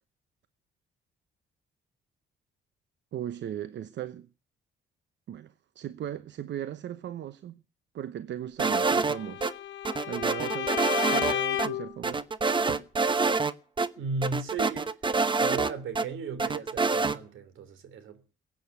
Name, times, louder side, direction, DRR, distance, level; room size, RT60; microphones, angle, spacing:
voice 1, 3.1-4.3 5.3-7.6 7.9-9.5 10.1-12.2 12.7-12.9, right 11 dB, 65° right, 0.9 m, -37 dB
sound 1, 8.6-9.5 9.9-11.3 11.6-11.7 12.0-13.5 13.8-13.9 14.2-16.1 16.4-17.2, right 4 dB, 25° right, 1.0 m, -26 dB
Bowed string instrument, 8.9-11.9, left 12 dB, 70° left, 0.9 m, -32 dB
voice 2, 14.0-15.0 15.3-18.4, right 4 dB, 80° right, 3.3 m, -36 dB
16.5 x 8.9 x 9.5 m
cardioid pair, 90°, 20 cm